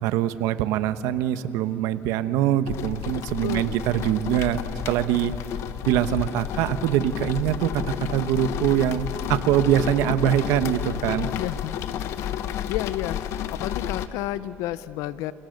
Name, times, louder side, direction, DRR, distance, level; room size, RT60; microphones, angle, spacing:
voice 1, 0.0-4.6 4.9-5.3 5.8-11.3, right 11 dB, 85° right, 12 dB, 1.1 m, -23 dB
sound 1, 2.7-14.1, left 10 dB, 60° left, 1.1 m, -31 dB
voice 2, 3.4-4.0 11.4-11.8 12.1-15.3, left 14 dB, 85° left, 16 dB, 0.8 m, -32 dB
29.0 x 28.5 x 6.6 m, 2.9 s
cardioid pair, 160°, 5 cm